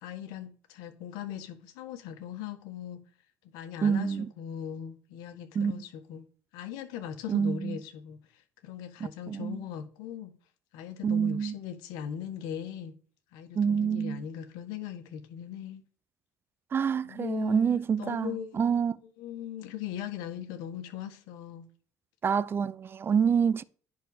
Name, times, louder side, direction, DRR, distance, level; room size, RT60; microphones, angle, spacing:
voice 1, 0.0-3.0 3.5-6.3 6.5-10.3 10.7-12.9 13.3-15.8 17.0-18.6 19.2-21.7, left 9 dB, 85° left, 1.6 m, -39 dB
voice 2, 3.8-4.3 5.5-5.8 7.3-7.8 9.3-9.6 11.0-11.5 13.5-14.2 16.7-19.0 22.2-23.6, right 7 dB, 35° right, 0.6 m, -27 dB
10.0 x 4.2 x 6.6 m
supercardioid pair, 95°, 7 cm